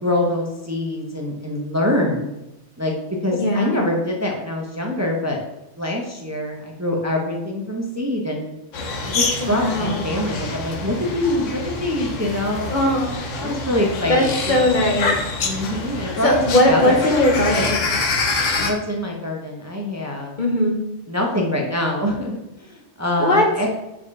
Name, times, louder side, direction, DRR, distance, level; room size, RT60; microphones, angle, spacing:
voice 1, 0.0-2.3 2.8-2.9 3.2-5.4 5.8-8.5 9.1-12.7 13.4-14.5 15.4-17.0 18.6-20.3 21.1-23.7, left 1 dB, 15° right, 0 dB, 0.8 m, -24 dB
voice 2, 3.4-3.8 9.4-10.0 12.7-13.6 14.1-15.1 16.2-17.8 20.4-20.8 23.2-23.4, left 1 dB, 45° left, 1 dB, 1.1 m, -19 dB
sound 1, 8.7-18.7, left 3 dB, 90° left, 1.3 m, -26 dB
5.2 x 4.9 x 5.4 m, 0.93 s
omnidirectional pair, 1.2 m